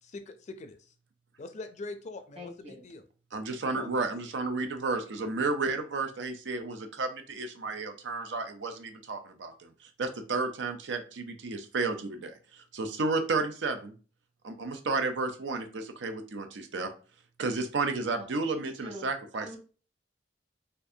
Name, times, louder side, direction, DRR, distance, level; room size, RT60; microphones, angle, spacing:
voice 1, 0.0-0.9 1.4-3.0 3.7-4.1, left 3 dB, 40° left, 9 dB, 0.4 m, -43 dB
voice 2, 2.4-2.8 18.2-19.0 19.3-19.6, left 1 dB, 30° right, 1 dB, 1.1 m, -45 dB
voice 3, 3.3-13.9 14.4-16.9 17.4-19.6, right 3 dB, 80° right, 6 dB, 0.6 m, -32 dB
4.4 x 2.6 x 2.7 m, 0.36 s
head